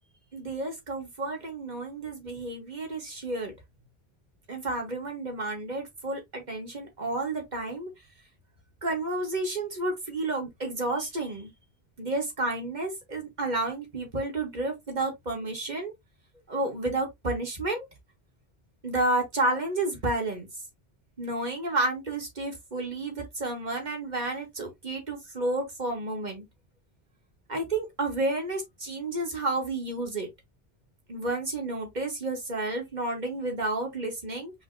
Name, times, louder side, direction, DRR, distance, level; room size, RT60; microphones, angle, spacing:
voice 1, 0.3-3.5 4.5-7.9 8.8-11.5 12.0-15.9 16.5-17.9 18.8-20.5 21.2-26.5 27.5-30.3 31.1-34.5, right 2 dB, 45° right, 2.0 m, -31 dB
5.9 x 3.3 x 2.7 m
omnidirectional pair, 1.1 m